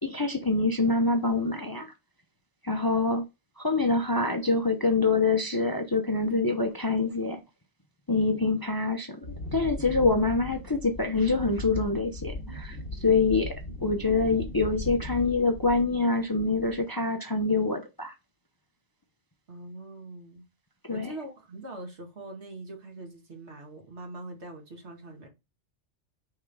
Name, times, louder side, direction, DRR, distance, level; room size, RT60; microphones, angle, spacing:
voice 1, 0.0-1.9 2.6-3.2 3.6-7.4 8.1-13.5 13.8-18.1 20.8-21.1, left 3 dB, 25° left, 0.6 m, -25 dB
Wind, 9.2-16.1 16.4-16.8, left 2 dB, 55° left, 1.9 m, -38 dB
voice 2, 19.5-20.5 20.9-25.3, right 2 dB, 70° right, 2.0 m, -42 dB
5.6 x 3.6 x 4.7 m
omnidirectional pair, 1.2 m